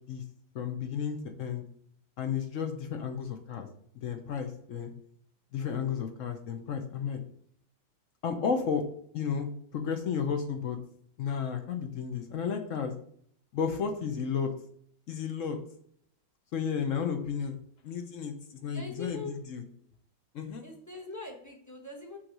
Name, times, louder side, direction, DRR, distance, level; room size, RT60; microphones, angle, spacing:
voice 1, 0.5-1.6 2.2-3.7 3.9-4.9 5.5-7.2 8.2-8.8 9.1-10.8 11.2-12.9 13.5-14.5 15.1-15.6 16.5-19.6 20.3-20.6, left 6 dB, 60° left, 6 dB, 0.9 m, -33 dB
voice 2, 18.6-19.4 20.6-22.2, left 3 dB, 15° left, 0 dB, 0.8 m, -42 dB
6.2 x 3.2 x 5.9 m, 0.64 s
omnidirectional pair, 1.9 m